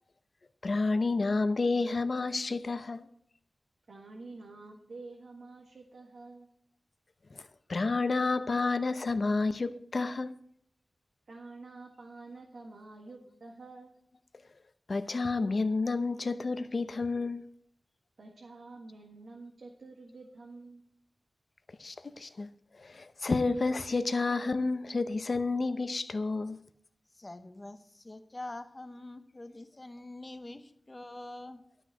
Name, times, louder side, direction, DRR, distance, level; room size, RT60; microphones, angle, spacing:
voice 1, 0.6-3.1 7.3-7.4 7.7-10.3 14.9-17.4 21.8-22.5 22.8-26.6, left 3 dB, 55° left, 0.8 m, -30 dB
voice 2, 3.9-6.5 11.3-13.9 18.2-20.8, right 3 dB, 80° right, 1.7 m, -48 dB
voice 3, 27.1-31.6, left 2 dB, 30° left, 0.9 m, -45 dB
11.5 x 6.3 x 7.9 m
wide cardioid pair, 100°, 0 cm